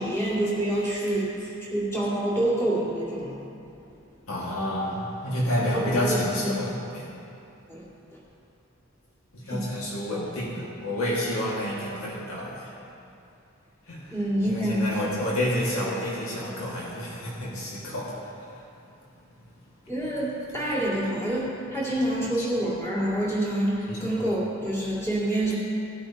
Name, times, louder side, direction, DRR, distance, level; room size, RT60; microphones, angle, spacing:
voice 1, 0.0-3.5 5.7-6.2 6.4-6.5 7.7-7.9 9.5-9.7 14.1-14.9 19.9-25.6, right 1 dB, 10° left, -8 dB, 2.3 m, -27 dB
voice 2, 4.3-7.1 9.3-12.7 13.9-18.7 22.4-22.5 23.9-24.1, left 1 dB, 75° left, -5 dB, 1.9 m, -29 dB
17.5 x 8.9 x 2.9 m, 2.7 s
head